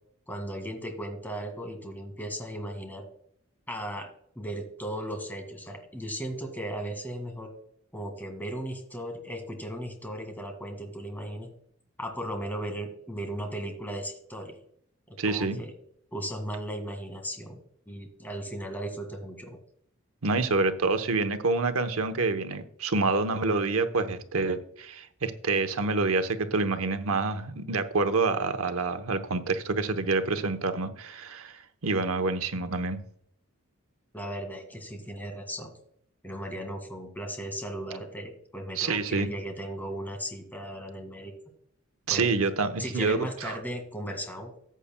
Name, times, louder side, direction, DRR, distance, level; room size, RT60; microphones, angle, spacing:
voice 1, 0.3-3.0 3.7-4.1 4.4-7.5 7.9-11.5 12.0-14.6 15.3-15.7 16.1-17.6 17.9-19.6 34.1-35.7 36.2-41.3 42.1-42.4 42.8-44.5, right 1 dB, 10° left, 1.9 m, -36 dB
voice 2, 15.2-15.6 20.2-33.0 38.8-39.3 42.1-43.6, right 3 dB, 85° right, 0.9 m, -27 dB
14.0 x 8.4 x 2.2 m
head